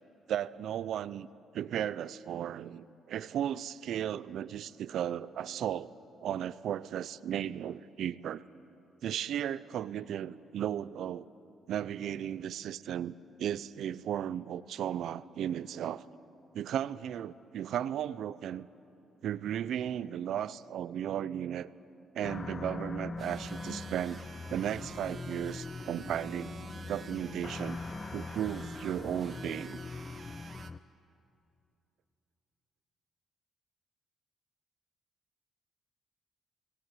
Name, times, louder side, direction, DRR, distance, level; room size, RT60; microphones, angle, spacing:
voice 1, 0.3-1.3 1.5-5.9 6.2-8.4 9.0-11.3 11.7-16.1 16.5-18.7 19.2-21.7 22.2-24.2 24.5-26.5 26.9-27.8 28.1-29.8, right 10 dB, 75° right, 17 dB, 0.5 m, -35 dB
sound 1, 22.2-30.8, left 4 dB, 30° left, 0.4 m, -42 dB
sound 2, 23.2-30.7, right 6 dB, 45° right, 1.1 m, -49 dB
18.5 x 17.5 x 9.2 m, 2.7 s
cardioid pair, 90°, 0 cm